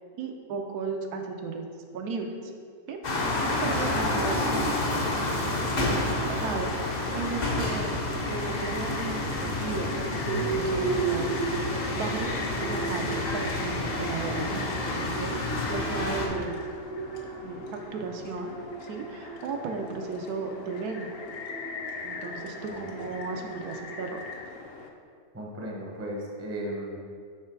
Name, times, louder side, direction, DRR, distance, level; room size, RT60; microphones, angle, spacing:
voice 1, 0.2-1.7 1.9-2.5 2.9-6.7 7.1-8.0 8.3-16.7 17.4-18.5 18.8-21.1 22.0-24.2, right 4 dB, 80° right, 3 dB, 1.2 m, -35 dB
sound 1, 3.0-16.3, left 2 dB, 50° left, 0.5 m, -29 dB
sound 2, 6.6-24.9, left 4 dB, 65° left, 0.9 m, -41 dB
yelping man, 10.3-24.5, right 4 dB, 55° right, 0.7 m, -36 dB
voice 2, 25.3-27.0, right 1 dB, 15° right, -2 dB, 0.6 m, -35 dB
6.5 x 3.7 x 4.6 m, 2.2 s
omnidirectional pair, 1.7 m